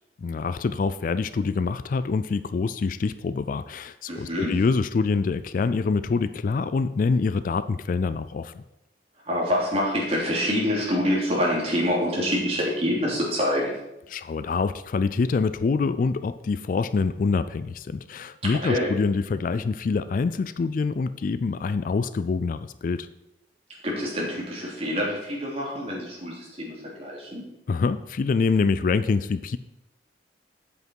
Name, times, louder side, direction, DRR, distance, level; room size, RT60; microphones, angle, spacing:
voice 1, 0.2-8.6 14.1-23.1 27.7-29.6, left 4 dB, 50° left, 14 dB, 0.3 m, -25 dB
voice 2, 4.1-4.5 9.3-13.7 18.4-18.9 23.8-27.4, equal, 35° right, -3 dB, 2.9 m, -26 dB
8.1 x 8.1 x 4.6 m, 0.91 s
head